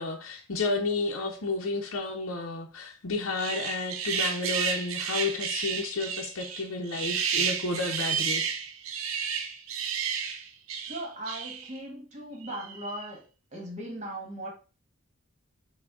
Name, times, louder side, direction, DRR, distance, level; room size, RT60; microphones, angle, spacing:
voice 1, 0.0-8.4, left 3 dB, 70° left, 0.7 m, -31 dB
sound 1, 3.3-11.8 12.4-13.1, right 7 dB, 75° right, 0.6 m, -32 dB
voice 2, 10.8-13.2 13.5-14.5, right 1 dB, 30° right, 1.3 m, -38 dB
5.9 x 2.2 x 3.5 m
head